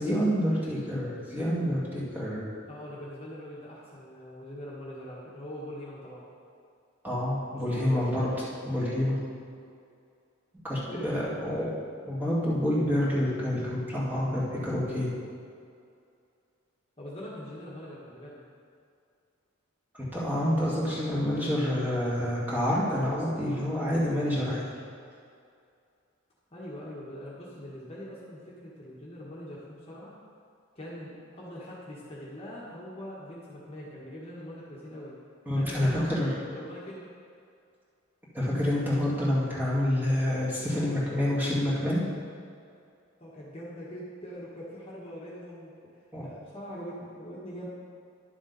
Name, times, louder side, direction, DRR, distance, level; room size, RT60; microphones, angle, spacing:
voice 1, 0.0-2.5 7.0-8.3 8.6-9.2 10.6-11.7 12.0-15.1 20.1-24.7 35.5-36.3 38.3-42.0 46.1-46.3, left 1 dB, 10° right, -8 dB, 2.2 m, -28 dB
voice 2, 2.7-6.2 7.5-8.3 10.8-11.5 17.0-18.4 26.5-30.1 30.7-35.1 35.5-37.0 43.2-45.7 46.2-47.7, equal, 30° left, -6 dB, 1.5 m, -42 dB
11.0 x 7.1 x 4.1 m, 2.4 s
head